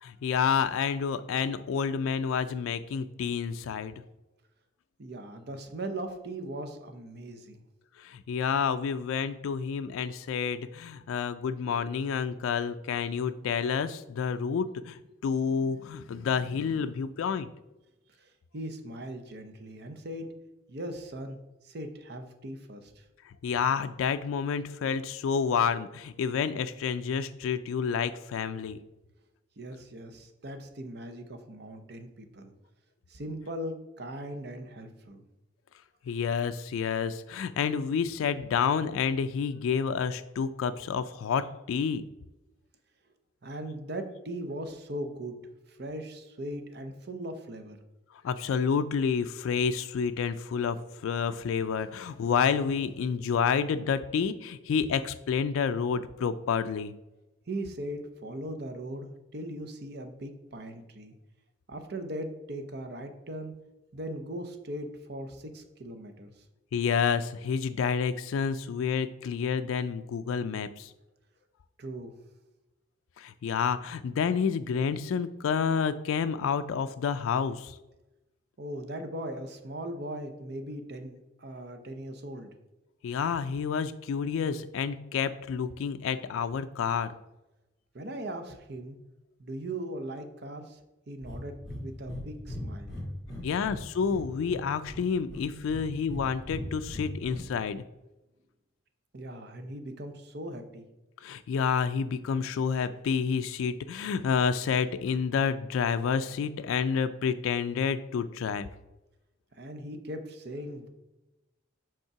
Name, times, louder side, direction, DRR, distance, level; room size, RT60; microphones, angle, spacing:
voice 1, 0.0-4.0 8.0-17.5 23.4-28.8 36.1-42.0 48.2-56.9 66.7-70.9 73.2-77.8 83.0-87.1 93.4-97.8 101.2-108.7, left 6 dB, 85° left, 10 dB, 0.3 m, -29 dB
voice 2, 5.0-7.6 18.2-20.3 20.7-21.4 21.6-23.0 29.6-32.5 33.1-35.2 43.4-45.4 45.7-47.8 57.5-61.1 61.7-63.5 63.9-66.4 71.8-72.1 78.6-82.5 87.9-89.0 89.4-90.8 91.1-93.0 99.1-100.9 109.5-110.9, right 1 dB, 55° right, 7 dB, 0.7 m, -39 dB
Breathing, 91.2-91.4 91.6-91.8 92.1-92.2 92.5-93.8 94.1-95.0 95.3-96.2 96.5-97.4, left 1 dB, ahead, 2.1 m, -39 dB
5.3 x 3.7 x 5.7 m, 0.99 s
head